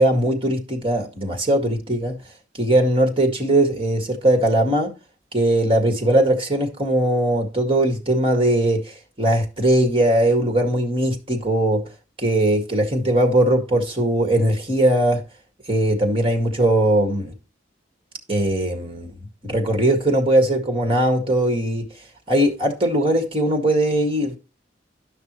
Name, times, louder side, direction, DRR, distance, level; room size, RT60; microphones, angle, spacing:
voice 1, 0.0-2.2 2.6-4.9 5.3-11.8 12.2-15.2 15.7-17.3 18.3-19.2 19.4-21.9 22.3-24.4, right 1 dB, 30° right, 2.0 m, -20 dB
11.5 x 5.9 x 3.0 m
head